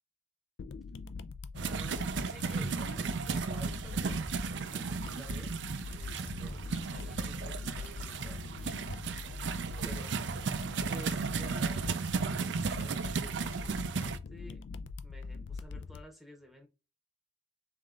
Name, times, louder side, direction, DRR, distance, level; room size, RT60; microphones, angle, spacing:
sound 1, 0.6-16.0, left 4 dB, 85° left, 0.4 m, -43 dB
voice 1, 1.6-4.3 4.6-9.5 9.8-10.4 10.9-11.9 12.3-14.6 15.0-16.7, equal, ahead, 0.8 m, -52 dB
sound 2, 1.6-14.2, right 5 dB, 75° right, 0.4 m, -35 dB
3.6 x 3.2 x 3.7 m
head